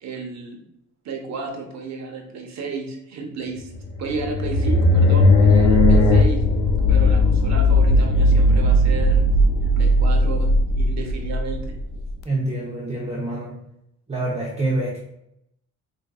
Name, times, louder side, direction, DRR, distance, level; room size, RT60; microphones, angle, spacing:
voice 1, 0.0-0.6 1.0-3.7 4.0-6.4 6.9-9.2 9.6-11.7, right 4 dB, 65° right, 2 dB, 0.8 m, -32 dB
sound 1, 3.7-12.1, left 1 dB, 85° left, 0.5 m, -17 dB
voice 2, 12.2-13.6 14.1-15.0, right 2 dB, 20° right, -5 dB, 0.8 m, -26 dB
4.5 x 2.6 x 2.3 m, 0.79 s
cardioid pair, 90°, 30 cm